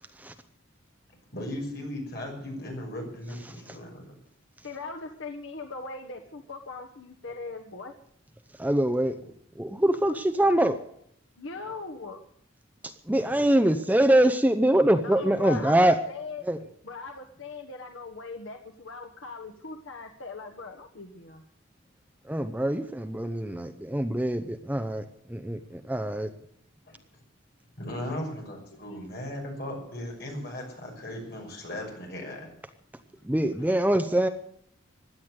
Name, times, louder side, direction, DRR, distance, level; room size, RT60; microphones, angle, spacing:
voice 1, 1.3-4.2 13.2-13.4 16.5-16.6 26.9-27.0 27.8-32.5, left 1 dB, 50° left, 0 dB, 6.3 m, -37 dB
voice 2, 4.6-7.9 11.4-12.2 15.0-16.5 16.8-21.4 28.7-28.8, left 4 dB, 75° left, 3 dB, 1.3 m, -40 dB
voice 3, 8.6-9.2 9.6-10.8 13.1-16.0 16.4-16.6 22.3-25.0 25.3-26.3 33.2-34.3, right 1 dB, 10° right, 8 dB, 0.7 m, -24 dB
16.5 x 10.5 x 8.0 m, 0.69 s
head